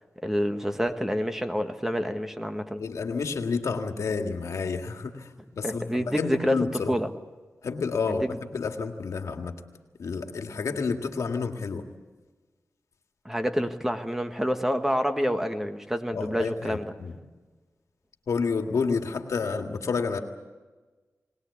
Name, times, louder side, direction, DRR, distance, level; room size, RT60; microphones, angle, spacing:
voice 1, 0.2-2.8 5.6-6.6 6.9-7.1 8.1-8.3 13.2-16.9, equal, 5° right, 7 dB, 1.5 m, -28 dB
voice 2, 2.8-7.0 7.6-9.5 10.0-11.9 16.1-17.2 18.3-20.2, left 5 dB, 85° left, 5 dB, 1.9 m, -30 dB
22.0 x 19.5 x 8.5 m, 1.3 s
wide cardioid pair, 75°, 5 cm